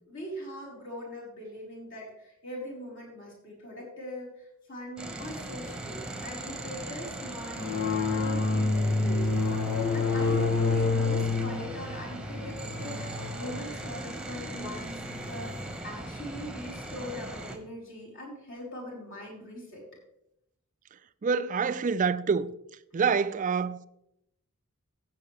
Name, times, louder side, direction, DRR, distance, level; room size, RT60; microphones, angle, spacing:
voice 1, 0.1-7.9 8.1-9.4 9.9-15.6 15.8-19.8, equal, 55° left, 4.4 m, -41 dB
sound 1, 5.0-17.6, right 1 dB, 5° right, 1.0 m, -39 dB
sound 2, 7.6-15.7, left 3 dB, 85° left, 1.2 m, -29 dB
voice 2, 21.2-22.5 22.9-23.9, right 5 dB, 35° right, 0.4 m, -26 dB
15.5 x 7.5 x 3.3 m
head